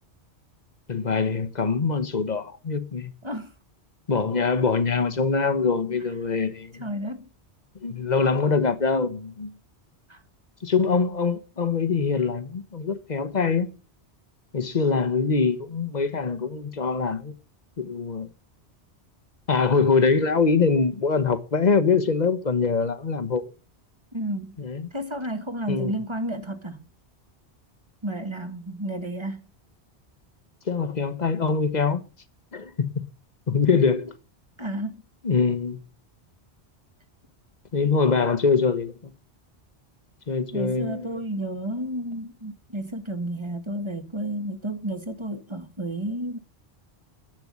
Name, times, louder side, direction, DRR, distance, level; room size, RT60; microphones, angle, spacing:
voice 1, 0.9-3.1 4.1-6.9 7.8-9.5 10.6-13.7 14.5-17.3 17.8-18.3 19.5-23.4 24.6-24.9 25.7-25.9 30.7-32.0 32.5-33.1 33.5-34.1 35.2-35.8 37.7-39.1 40.3-41.1, left 5 dB, 40° left, 1.2 m, -23 dB
voice 2, 3.2-3.5 6.7-7.3 10.1-10.2 24.1-24.6 24.9-26.9 28.0-29.4 33.7-33.8 34.6-35.0 40.5-46.4, right 1 dB, 25° right, 1.5 m, -32 dB
10.5 x 7.9 x 9.5 m
omnidirectional pair, 1.1 m